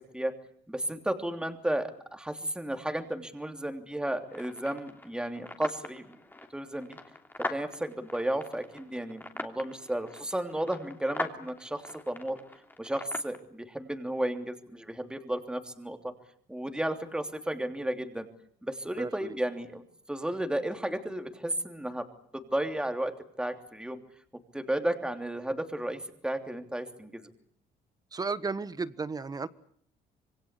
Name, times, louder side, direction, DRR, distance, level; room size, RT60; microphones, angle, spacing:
voice 1, 0.7-6.0 6.5-7.0 7.5-12.4 12.8-16.1 16.5-18.3 18.6-19.8 20.1-22.1 22.3-23.1 23.4-24.0 24.5-27.2, right 1 dB, 5° right, 6 dB, 3.1 m, -33 dB
sound 1, 4.3-13.4, left 2 dB, 10° left, 3.1 m, -42 dB
voice 2, 19.0-19.4 28.1-29.5, right 4 dB, 20° right, 15 dB, 1.4 m, -34 dB
26.5 x 22.5 x 8.3 m, 0.63 s
cardioid pair, 110°, 17 cm